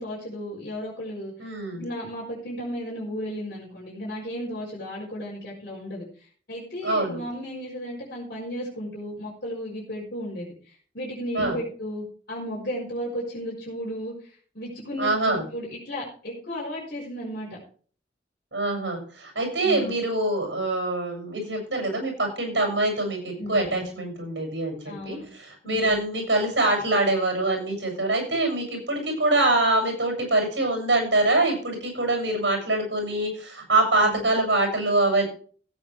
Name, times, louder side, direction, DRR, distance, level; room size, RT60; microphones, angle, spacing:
voice 1, 0.0-17.6 19.6-19.9 23.4-23.8 24.8-25.3 25.6-26.0 34.0-34.3, equal, 55° left, -6 dB, 4.8 m, -34 dB
voice 2, 1.4-1.8 6.8-7.2 11.3-11.6 15.0-15.4 18.5-35.2, right 2 dB, 75° right, 2 dB, 7.1 m, -24 dB
16.0 x 9.0 x 3.5 m, 0.43 s
head